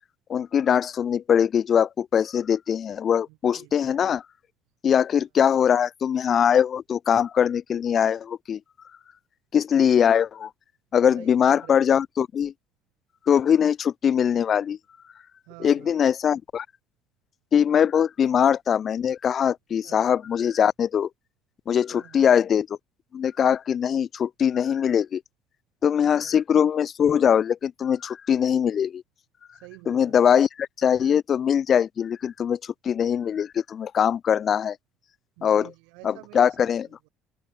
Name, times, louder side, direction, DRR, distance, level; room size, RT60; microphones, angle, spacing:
voice 1, 0.3-4.2 4.8-8.6 9.5-10.5 10.9-12.5 13.3-14.8 15.6-16.7 17.5-21.1 21.7-22.7 23.1-25.2 25.8-29.0 29.9-34.8 35.4-35.7 36.0-36.9, left 8 dB, 35° left, 0.4 m, -22 dB
voice 2, 3.3-3.7 5.1-5.2 11.1-11.8 15.5-16.0 19.8-20.0 21.9-22.2 26.2-26.3 29.5-30.2 35.4-37.1, right 31 dB, 85° right, 4.9 m, -48 dB
cardioid pair, 140°, 0 cm